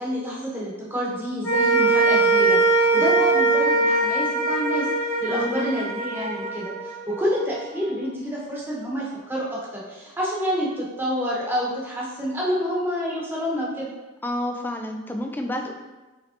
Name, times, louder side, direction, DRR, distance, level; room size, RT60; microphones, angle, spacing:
voice 1, 0.0-4.9 5.2-13.9, equal, 10° right, -5 dB, 0.9 m, -28 dB
sound 1, 1.4-7.9, right 3 dB, 75° left, 1.5 m, -21 dB
voice 2, 5.3-5.7 14.2-15.7, left 1 dB, 10° left, 3 dB, 0.3 m, -29 dB
5.0 x 3.2 x 2.8 m, 1.2 s
head